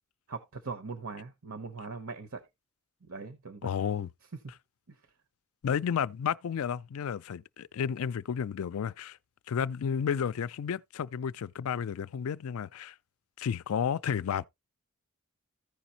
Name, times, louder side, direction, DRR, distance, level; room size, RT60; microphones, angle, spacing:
voice 1, 0.3-2.5 3.0-3.7 4.9-5.0, right 4 dB, 75° right, 0.9 m, -41 dB
voice 2, 3.6-4.1 5.6-9.2 9.5-12.9 13.4-14.5, left 7 dB, 80° left, 0.4 m, -32 dB
15.0 x 5.0 x 2.8 m
head